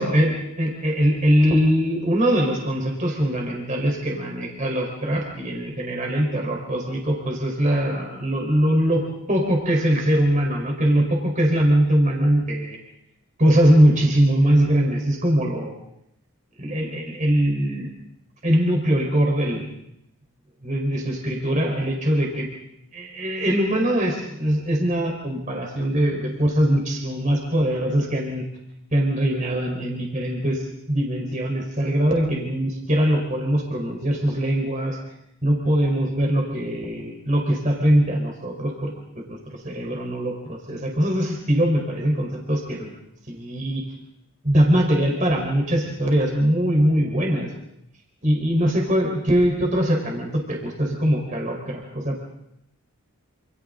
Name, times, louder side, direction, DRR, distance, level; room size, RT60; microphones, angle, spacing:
voice 1, 0.0-12.8 13.4-15.7 16.6-17.9 18.4-19.7 20.6-22.5 22.9-28.5 28.9-30.6 30.9-35.0 35.4-38.9 39.3-39.4 39.6-42.9 43.3-43.8 44.4-47.5 48.2-52.2, equal, 35° right, 1 dB, 4.4 m, -22 dB
28.5 x 28.0 x 3.9 m, 0.80 s
head